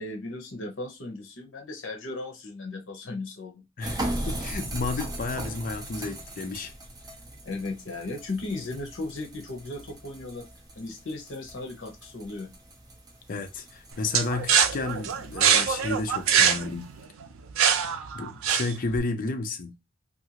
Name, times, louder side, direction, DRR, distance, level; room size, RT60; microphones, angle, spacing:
voice 1, 0.0-3.6 7.4-10.5 10.8-12.5, left 2 dB, 65° left, 0.8 m, -36 dB
voice 2, 3.8-6.7 13.3-16.9 18.1-19.7, left 3 dB, 45° left, 0.5 m, -32 dB
sound 1, 3.8-16.9, right 1 dB, 20° right, 0.6 m, -39 dB
sound 2, 14.1-19.0, right 7 dB, 90° right, 0.4 m, -23 dB
2.8 x 2.6 x 2.8 m
head